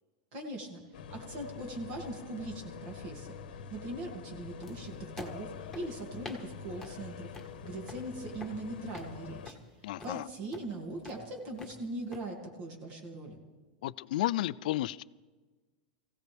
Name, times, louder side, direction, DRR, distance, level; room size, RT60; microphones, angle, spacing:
voice 1, 0.3-0.8 1.1-3.4 3.7-7.3 7.6-9.6 10.0-13.4, right 1 dB, 45° right, 2.4 m, -40 dB
sound 1, 0.9-9.5, left 6 dB, 90° left, 1.2 m, -46 dB
sound 2, 4.6-12.2, left 2 dB, 5° left, 1.6 m, -50 dB
voice 2, 9.8-10.3 13.8-15.0, left 15 dB, 65° left, 0.4 m, -32 dB
23.0 x 16.0 x 3.5 m
supercardioid pair, 160°, 5 cm